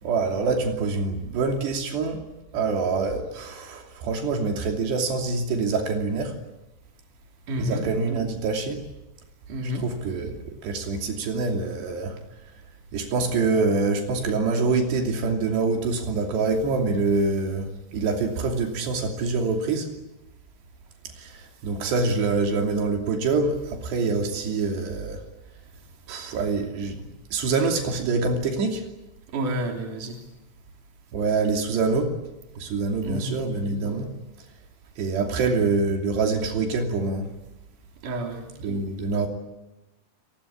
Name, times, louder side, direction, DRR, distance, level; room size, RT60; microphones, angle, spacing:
voice 1, 0.0-2.2 2.5-6.4 7.6-8.8 9.6-12.2 12.9-19.9 21.2-25.2 26.1-28.8 31.1-32.2 32.6-34.1 35.0-37.2 38.6-39.3, right 4 dB, 90° right, 3 dB, 5.1 m, -25 dB
voice 2, 7.5-7.9 9.5-9.9 29.3-30.2 33.0-33.4 38.0-38.4, equal, 50° right, 2 dB, 4.7 m, -29 dB
29.0 x 20.0 x 8.6 m, 1.0 s
omnidirectional pair, 4.7 m